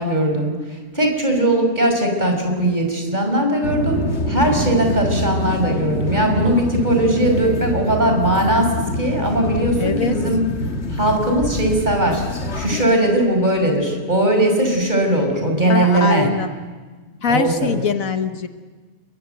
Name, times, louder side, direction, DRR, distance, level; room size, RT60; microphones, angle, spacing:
voice 1, 0.0-10.4 10.9-12.2 12.5-16.3 17.3-17.8, right 1 dB, 35° right, 3 dB, 6.0 m, -19 dB
sound 1, 3.6-12.8, left 1 dB, 55° left, 1.9 m, -25 dB
voice 2, 9.8-10.2 15.7-16.5 17.2-18.5, left 6 dB, 75° left, 8 dB, 1.6 m, -22 dB
29.5 x 22.5 x 8.1 m, 1.4 s
omnidirectional pair, 1.4 m